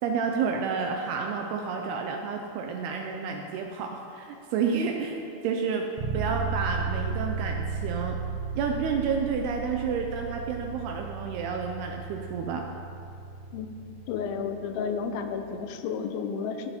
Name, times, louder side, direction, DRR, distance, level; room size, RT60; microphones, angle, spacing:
voice 1, 0.0-5.9 6.1-8.2 8.6-12.7, right 5 dB, 80° right, 3 dB, 2.4 m, -30 dB
sound 1, 6.0-15.7, right 5 dB, 60° right, 1.7 m, -35 dB
voice 2, 14.1-16.7, left 6 dB, 90° left, 6 dB, 3.1 m, -32 dB
17.0 x 8.2 x 4.3 m, 2.7 s
omnidirectional pair, 5.1 m